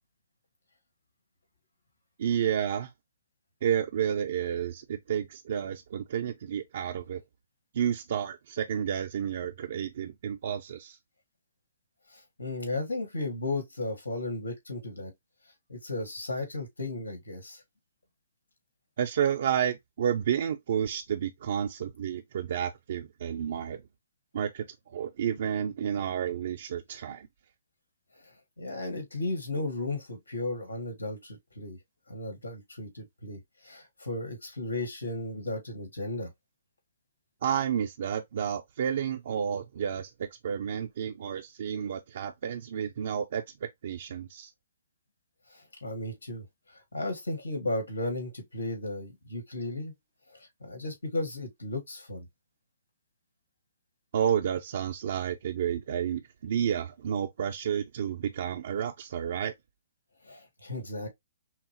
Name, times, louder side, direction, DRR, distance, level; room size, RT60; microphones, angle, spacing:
voice 1, 2.2-2.9 3.6-7.2 7.7-11.0 19.0-23.8 24.3-27.3 37.4-40.1 40.4-44.5 54.1-59.5, right 8 dB, 55° right, 0.5 m, -31 dB
voice 2, 12.1-15.1 15.7-17.6 28.6-31.8 32.1-33.4 33.6-36.3 45.5-46.4 46.7-49.9 50.3-52.3 60.2-61.1, left 2 dB, 90° left, 1.7 m, -35 dB
5.7 x 2.0 x 2.9 m
hypercardioid pair, 140°, 0 cm